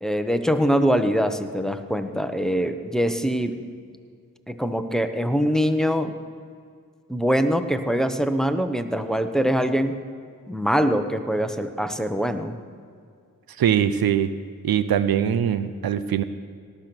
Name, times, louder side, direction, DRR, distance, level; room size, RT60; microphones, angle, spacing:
voice 1, 0.0-3.6 4.5-6.1 7.1-10.0 10.5-12.6, equal, ahead, 8 dB, 1.0 m, -23 dB
voice 2, 13.6-14.3 14.6-16.2, right 9 dB, 85° right, 13 dB, 0.6 m, -22 dB
18.0 x 6.9 x 6.2 m, 2.2 s
cardioid pair, 40°, 35 cm